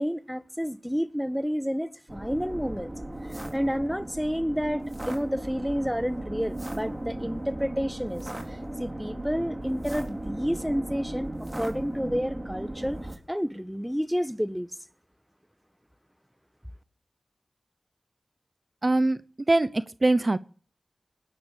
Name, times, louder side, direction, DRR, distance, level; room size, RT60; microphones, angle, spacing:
voice 1, 0.0-2.9 3.5-11.3 11.5-13.0 13.3-14.7, equal, ahead, 1.2 m, -30 dB
sound 1, 2.1-13.2, right 1 dB, 30° right, 3.8 m, -36 dB
voice 2, 18.8-19.2 19.5-20.4, right 2 dB, 45° right, 0.8 m, -22 dB
19.0 x 11.0 x 6.7 m
cardioid pair, 45°, 0 cm